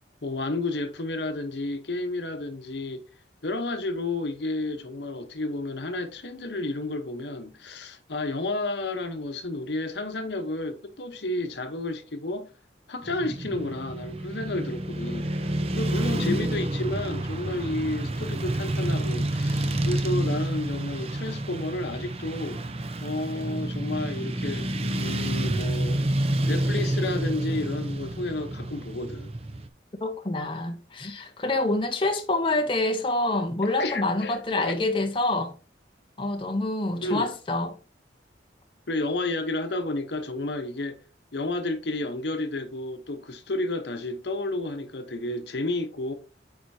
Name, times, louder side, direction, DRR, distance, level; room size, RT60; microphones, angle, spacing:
voice 1, 0.2-3.0 3.4-12.5 12.9-22.6 23.0-24.7 25.0-26.0 26.5-29.3 33.6-34.8 37.0-37.3 38.9-41.0 41.3-46.1, left 2 dB, 70° left, 1.0 m, -31 dB
Motorcycle / Traffic noise roadway noise, 13.0-29.7, right 1 dB, 35° right, 0.6 m, -29 dB
voice 2, 30.0-35.5 36.2-37.7, left 2 dB, 30° left, 0.7 m, -27 dB
9.3 x 4.3 x 2.7 m
head